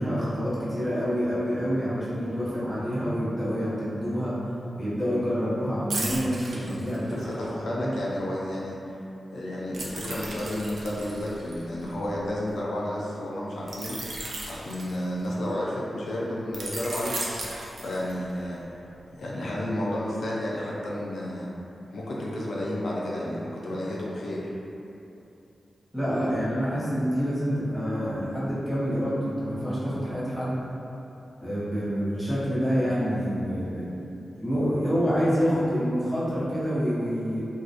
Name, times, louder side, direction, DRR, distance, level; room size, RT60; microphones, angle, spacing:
voice 1, 0.0-4.4 4.7-7.4 7.7-7.9 25.9-30.6 31.4-33.9 34.4-37.4, equal, ahead, -10 dB, 0.5 m, -27 dB
sound 1, 5.9-7.4 9.7-12.5 13.7-15.5 16.5-18.4 18.8-19.0, right 2 dB, 60° right, 0.3 m, -36 dB
voice 2, 7.1-8.8 9.3-14.1 14.5-17.2 17.5-18.6 19.2-21.5 21.9-24.5, left 1 dB, 75° left, -5 dB, 0.3 m, -31 dB
2.6 x 2.0 x 2.4 m, 2.8 s
wide cardioid pair, 180°, 0 cm